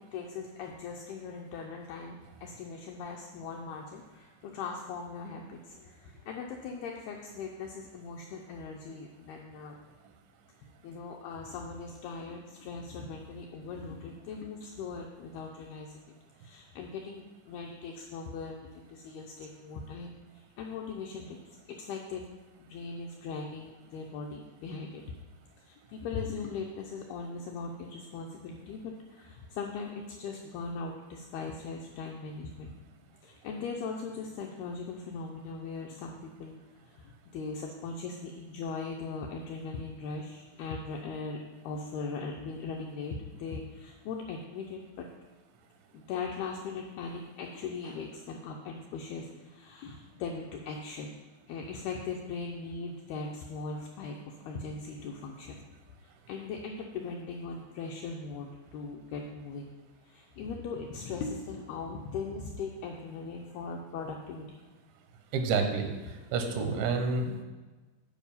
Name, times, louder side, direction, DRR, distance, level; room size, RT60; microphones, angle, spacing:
voice 1, 0.1-9.8 10.8-16.1 16.4-21.4 21.7-22.3 22.6-25.0 25.6-32.7 33.2-36.5 36.9-41.4 41.6-45.1 45.9-51.2 51.5-55.6 56.0-59.7 60.0-64.6 66.7-66.8, left 4 dB, 85° left, 1 dB, 2.2 m, -39 dB
voice 2, 65.3-67.4, right 4 dB, 85° right, 5 dB, 3.3 m, -29 dB
9.4 x 5.0 x 5.4 m, 1.3 s
omnidirectional pair, 5.2 m